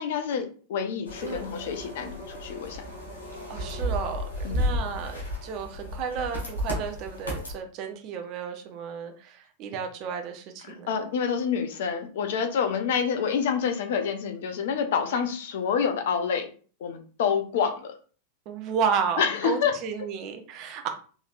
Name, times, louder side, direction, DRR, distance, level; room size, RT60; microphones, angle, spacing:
voice 1, 0.0-2.8 4.4-4.8 10.6-16.5 16.8-17.9 19.2-19.7 20.0-20.1, left 7 dB, 55° left, 6 dB, 0.7 m, -28 dB
sound 1, 1.0-7.5, equal, 75° left, 1.7 m, -33 dB
voice 2, 1.2-1.5 3.5-10.9 18.5-20.9, right 6 dB, 40° right, 5 dB, 0.8 m, -32 dB
4.2 x 3.1 x 2.5 m, 0.40 s
figure-of-eight pair, 90°, 0 cm